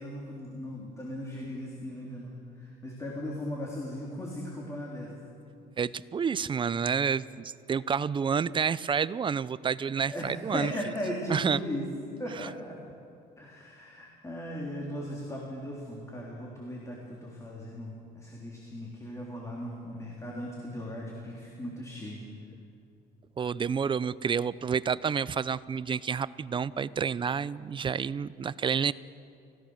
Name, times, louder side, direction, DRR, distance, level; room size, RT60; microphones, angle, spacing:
voice 1, 0.0-5.1 10.1-11.9 12.2-12.8 13.4-22.2, left 1 dB, 20° left, -3 dB, 3.7 m, -38 dB
voice 2, 5.8-10.7 11.3-11.6 12.4-12.5 23.4-28.9, right 6 dB, 30° right, 17 dB, 0.6 m, -29 dB
29.5 x 16.0 x 6.5 m, 2.5 s
cardioid pair, 110°, 17 cm